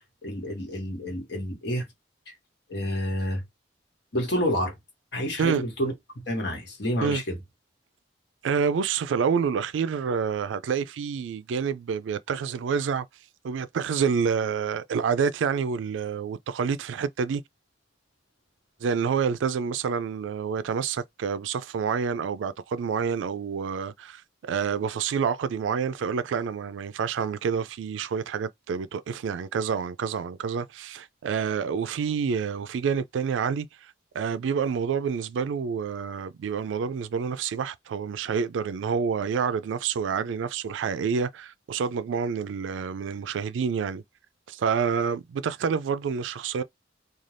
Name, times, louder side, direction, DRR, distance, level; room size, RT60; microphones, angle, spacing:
voice 1, 0.2-1.9 2.3-2.4 2.7-3.4 4.1-4.7 5.1-5.9 6.3-7.4, equal, 65° left, 1.3 m, -29 dB
voice 2, 8.4-13.1 13.4-17.4 18.8-24.2 24.5-33.7 34.1-44.0 44.5-46.6, right 6 dB, 85° right, 0.3 m, -28 dB
2.5 x 2.3 x 3.2 m
head